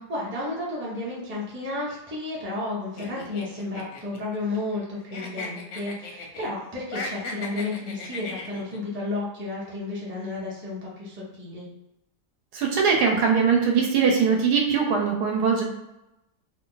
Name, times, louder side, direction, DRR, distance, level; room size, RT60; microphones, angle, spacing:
voice 1, 0.1-11.7, left 2 dB, 10° right, -6 dB, 0.6 m, -32 dB
sound 1, 3.0-4.8 5.1-6.5 6.8-8.8, left 3 dB, 60° left, 0.8 m, -37 dB
voice 2, 12.5-15.6, right 6 dB, 75° right, 1 dB, 1.2 m, -21 dB
2.9 x 2.3 x 3.8 m, 0.91 s
omnidirectional pair, 1.8 m